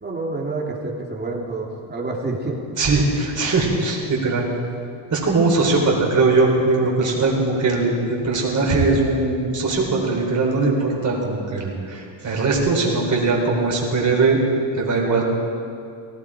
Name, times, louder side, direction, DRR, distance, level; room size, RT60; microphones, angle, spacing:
voice 1, 0.0-2.6, right 2 dB, 20° right, -2 dB, 2.9 m, -28 dB
voice 2, 2.8-4.5 5.1-14.4 14.7-15.3, right 3 dB, 40° right, -2 dB, 4.2 m, -20 dB
17.5 x 16.5 x 5.0 m, 2.5 s
cardioid pair, 115°, 47 cm